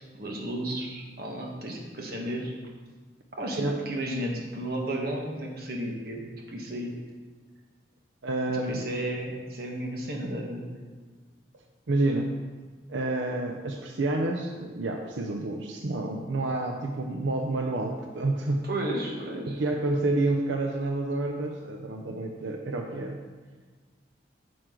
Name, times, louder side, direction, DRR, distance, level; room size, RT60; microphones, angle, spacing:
voice 1, 0.0-2.5 3.3-6.9 8.6-10.6 18.6-19.6, right 1 dB, 55° right, 0 dB, 1.3 m, -33 dB
voice 2, 8.2-8.9 11.9-12.3 12.9-18.6 19.5-23.2, right 2 dB, 85° right, 3 dB, 0.6 m, -29 dB
9.3 x 6.0 x 3.8 m, 1.4 s
head